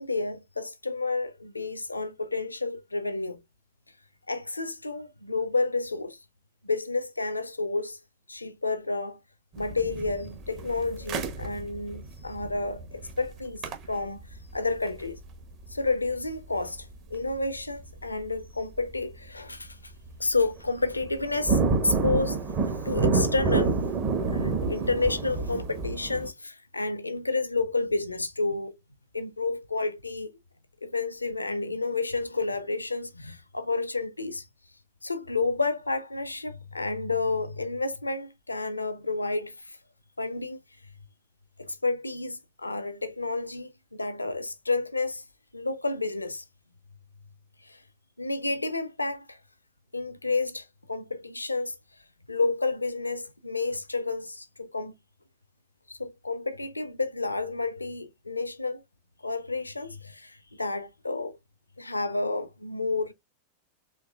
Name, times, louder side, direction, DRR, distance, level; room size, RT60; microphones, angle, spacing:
voice 1, 0.0-3.4 4.3-6.2 6.6-8.0 8.3-9.2 9.6-13.6 13.9-14.2 14.5-15.2 15.7-19.8 20.2-22.4 22.8-23.7 24.3-28.8 29.1-30.3 30.8-34.4 35.0-39.8 40.2-40.6 41.6-45.2 45.5-46.4 47.7-47.8 48.2-49.4 49.9-51.8 52.3-54.9 55.9-58.8 59.2-61.4 61.8-63.1, left 3 dB, 80° left, 0.5 m, -30 dB
sound 1, 9.5-17.6 17.8-18.0 18.6-18.9 19.3-19.7 20.1-20.2 20.4-26.3, right 4 dB, 40° right, 0.9 m, -29 dB
4.5 x 3.1 x 2.2 m
figure-of-eight pair, 90°, 0 cm